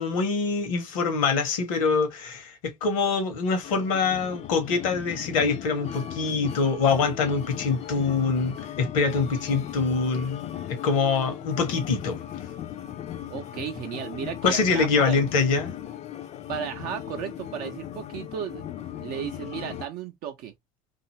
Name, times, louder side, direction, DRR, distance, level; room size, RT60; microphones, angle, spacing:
voice 1, 0.0-12.2 14.4-15.7, left 4 dB, 70° left, 0.9 m, -25 dB
sound 1, 3.6-19.8, left 10 dB, 40° left, 0.4 m, -37 dB
voice 2, 13.3-15.2 16.5-20.5, right 8 dB, 55° right, 0.5 m, -34 dB
2.6 x 2.3 x 2.8 m
figure-of-eight pair, 60°, 18 cm